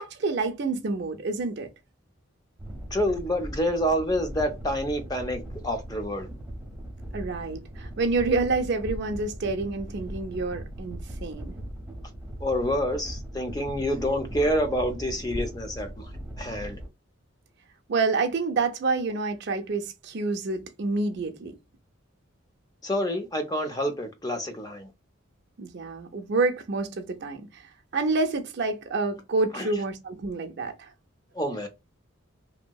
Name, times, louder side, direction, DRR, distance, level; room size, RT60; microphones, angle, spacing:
voice 1, 0.0-1.7 7.1-11.6 17.9-21.6 25.6-30.9, right 3 dB, 55° right, 0.5 m, -28 dB
sound 1, 2.6-16.9, right 1 dB, 10° right, 0.8 m, -39 dB
voice 2, 2.9-6.3 12.4-16.1 16.4-16.8 22.8-24.9 29.5-29.7 31.3-31.7, equal, 20° left, 0.5 m, -28 dB
2.8 x 2.7 x 2.2 m
head